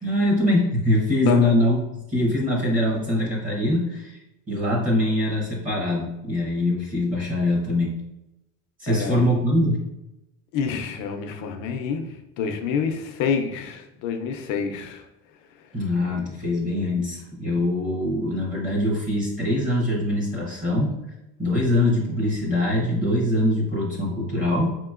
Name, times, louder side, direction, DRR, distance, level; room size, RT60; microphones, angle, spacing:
voice 1, 0.0-1.8 2.1-4.2 4.5-7.9 8.8-9.8 15.7-21.0 21.4-24.7, left 1 dB, 25° right, -3 dB, 0.9 m, -23 dB
voice 2, 8.9-9.2 10.5-15.0 16.1-16.2, left 6 dB, 70° left, 4 dB, 0.6 m, -28 dB
5.0 x 2.9 x 2.4 m, 0.92 s
cardioid pair, 165°, 33 cm